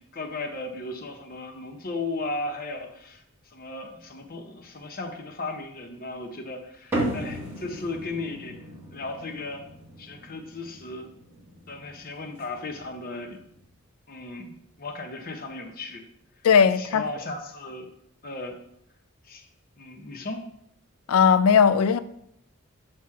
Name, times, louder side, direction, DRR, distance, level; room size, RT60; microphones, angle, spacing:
voice 1, 0.0-3.2 3.5-8.6 8.9-9.6 10.0-11.1 11.7-13.4 14.1-16.0 16.8-17.9 18.2-18.6 19.3-19.5 19.8-20.4, left 2 dB, 40° left, 0.7 m, -36 dB
sound 1, 6.9-13.6, right 1 dB, 10° right, 1.5 m, -36 dB
voice 2, 16.4-17.0 21.1-22.0, left 6 dB, 80° left, 0.3 m, -18 dB
6.1 x 3.1 x 5.7 m
head